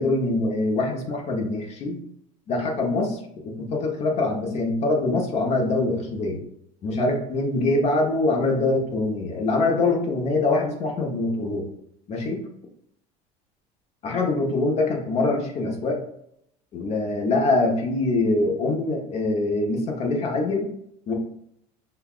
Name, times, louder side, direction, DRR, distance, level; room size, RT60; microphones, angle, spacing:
voice 1, 0.0-2.0 2.5-6.4 6.8-11.7 12.1-12.4 14.0-16.0 16.7-20.7 21.1-21.2, left 2 dB, 40° left, 1 dB, 0.9 m, -24 dB
5.4 x 2.3 x 2.4 m, 0.74 s
cardioid pair, 130°, 16 cm